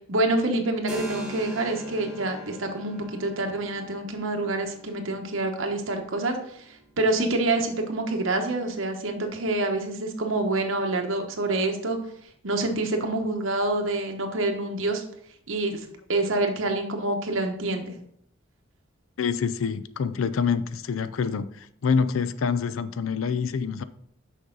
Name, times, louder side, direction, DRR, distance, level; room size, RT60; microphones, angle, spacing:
voice 1, 0.1-12.0 12.4-15.0 15.5-15.8 16.1-17.9, right 2 dB, 75° right, 1.1 m, -27 dB
Keyboard (musical), 0.9-8.2, right 1 dB, 5° right, 1.8 m, -43 dB
voice 2, 19.2-23.8, left 6 dB, 90° left, 0.4 m, -26 dB
6.5 x 5.5 x 3.9 m
head